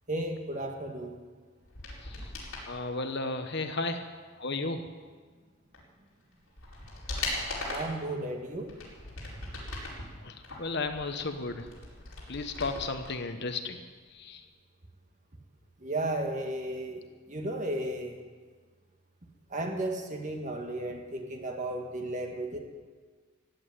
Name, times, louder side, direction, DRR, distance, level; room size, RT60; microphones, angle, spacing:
voice 1, 0.1-1.2 7.7-8.7 15.8-17.0 17.3-18.2 19.5-22.6, right 1 dB, 35° right, 3 dB, 1.7 m, -34 dB
sound 1, 1.6-2.7 5.7-5.8 6.3-8.0 8.6-10.0 10.4-13.1 13.4-13.5, left 2 dB, 70° left, 4.7 m, -39 dB
voice 2, 2.7-4.1 4.4-4.8 10.2-11.7 12.3-13.8 14.1-14.4, left 3 dB, 50° left, 7 dB, 1.1 m, -34 dB
16.0 x 8.7 x 9.2 m, 1.5 s
head